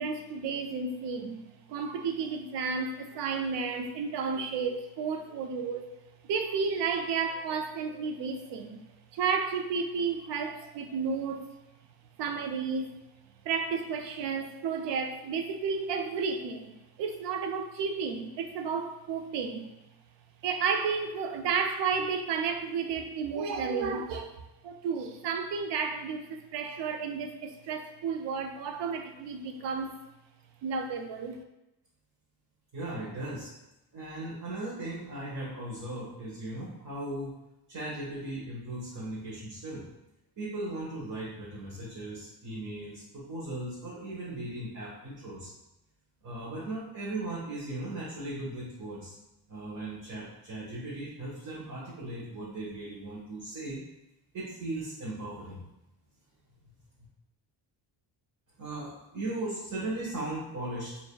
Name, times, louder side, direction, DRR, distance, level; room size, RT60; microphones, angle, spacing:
voice 1, 0.0-1.4 1.7-5.9 6.3-8.8 9.1-11.4 12.2-12.9 13.4-16.7 17.0-19.7 20.4-24.4 24.6-30.0 30.6-31.4, right 5 dB, 75° right, 6 dB, 0.6 m, -32 dB
voice 2, 32.7-33.5 33.9-37.3 37.7-39.9 40.4-45.5 46.2-49.1 49.5-53.8 54.3-55.6 58.6-61.0, right 2 dB, 45° right, -8 dB, 1.2 m, -37 dB
5.0 x 2.8 x 2.2 m, 0.93 s
cardioid pair, 110°, 42 cm